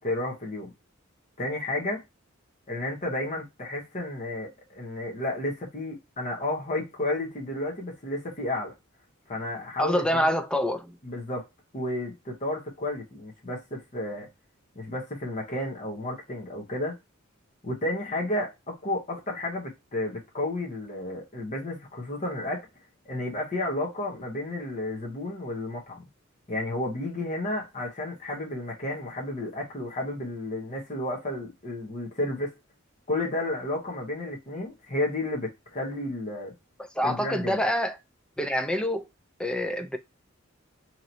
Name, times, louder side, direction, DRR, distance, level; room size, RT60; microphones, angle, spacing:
voice 1, 0.0-0.7 1.4-2.0 2.7-8.7 9.3-10.3 11.0-11.5 11.7-14.3 14.7-17.0 17.6-22.7 23.0-26.0 26.5-32.5 33.1-36.5 37.0-37.7, left 1 dB, 40° left, 0.9 m, -32 dB
voice 2, 9.8-11.0 37.0-38.0 38.4-39.0 39.4-40.0, equal, 5° left, 0.4 m, -26 dB
2.9 x 2.9 x 3.9 m
head